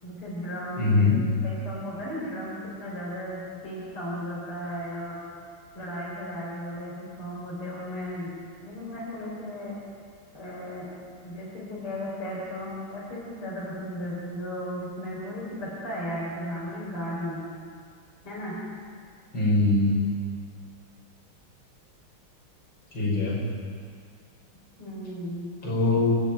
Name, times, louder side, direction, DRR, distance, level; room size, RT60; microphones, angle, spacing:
voice 1, 0.0-5.2 5.7-8.3 8.6-9.8 10.3-10.9 11.2-17.4 18.2-18.6 24.8-25.5, equal, 85° left, -6 dB, 5.9 m, -35 dB
voice 2, 0.8-1.2 19.3-20.1 22.9-23.4 25.6-26.2, left 3 dB, 65° left, -6 dB, 7.3 m, -22 dB
29.5 x 10.0 x 9.3 m, 2.1 s
omnidirectional pair, 2.4 m